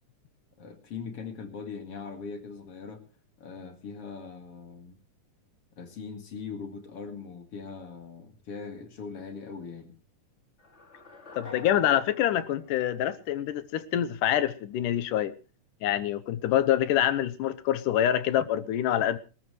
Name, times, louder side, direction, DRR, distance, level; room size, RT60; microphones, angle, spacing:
voice 1, 0.6-3.0 3.4-5.0 5.8-9.9, left 5 dB, 50° left, 2.7 m, -40 dB
sound 1, 10.6-13.7, left 3 dB, 25° left, 1.9 m, -48 dB
voice 2, 11.3-15.3 15.8-19.2, left 11 dB, 90° left, 2.5 m, -26 dB
23.5 x 13.5 x 3.2 m
omnidirectional pair, 3.6 m